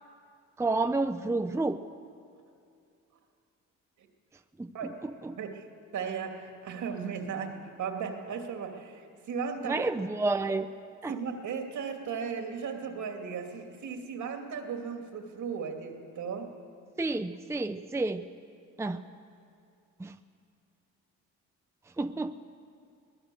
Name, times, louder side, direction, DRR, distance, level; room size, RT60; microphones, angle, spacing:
voice 1, 0.6-1.8 4.6-4.7 5.0-5.4 9.6-10.7 11.0-11.2 17.0-18.3 18.8-19.0 20.0-20.2 22.0-22.4, right 2 dB, 10° right, 8 dB, 0.6 m, -30 dB
voice 2, 5.9-9.8 11.1-16.5, right 6 dB, 65° right, 4 dB, 2.6 m, -36 dB
23.5 x 18.5 x 7.7 m, 2.5 s
cardioid pair, 95°, 31 cm